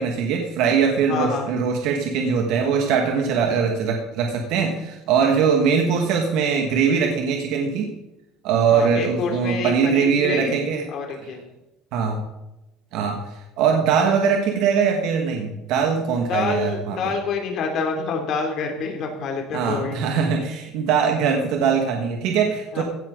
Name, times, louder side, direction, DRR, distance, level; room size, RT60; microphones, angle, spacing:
voice 1, 0.0-7.9 8.4-10.8 11.2-11.3 11.9-12.2 12.9-13.2 13.6-17.0 19.5-22.8, right 6 dB, 65° right, 2 dB, 1.7 m, -21 dB
voice 2, 1.1-1.5 8.7-10.6 10.9-11.4 16.3-20.0 22.7-22.8, left 5 dB, 45° left, 2 dB, 2.9 m, -27 dB
16.0 x 10.0 x 3.9 m, 0.94 s
cardioid pair, 160°, 0 cm